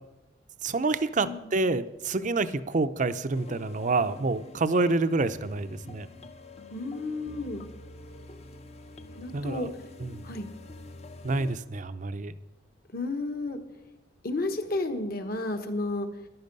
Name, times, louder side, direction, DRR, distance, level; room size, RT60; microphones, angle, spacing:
voice 1, 0.6-6.1 9.3-9.7 10.0-10.3 11.2-12.3, right 3 dB, 40° right, 12 dB, 0.6 m, -28 dB
sound 1, 3.3-11.6, left 2 dB, 35° left, 0.7 m, -47 dB
voice 2, 6.7-7.7 9.2-9.7 10.2-10.5 12.9-13.6 14.2-16.1, left 2 dB, 50° left, 8 dB, 1.3 m, -32 dB
13.5 x 11.5 x 5.4 m, 0.99 s
head